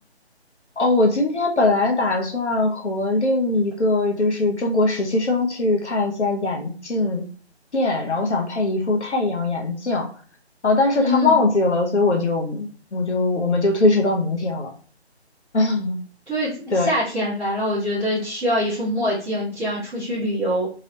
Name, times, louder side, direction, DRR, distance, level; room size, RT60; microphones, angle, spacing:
voice 1, 0.8-7.2 7.7-10.1 10.6-14.7 15.5-16.0 16.7-16.9, left 2 dB, 85° left, 2 dB, 0.9 m, -21 dB
voice 2, 10.9-11.4 16.3-20.7, equal, 5° right, -20 dB, 0.8 m, -24 dB
3.0 x 2.8 x 2.9 m, 0.41 s
figure-of-eight pair, 155°, 33 cm